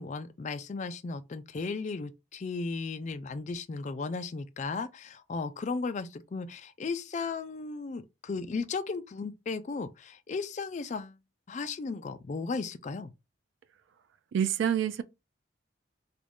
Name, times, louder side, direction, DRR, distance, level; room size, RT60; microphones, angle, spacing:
voice 1, 0.0-11.2 11.5-13.1, left 4 dB, 40° left, 0.3 m, -35 dB
voice 2, 14.3-15.0, right 9 dB, 75° right, 0.3 m, -27 dB
3.0 x 2.5 x 3.5 m
head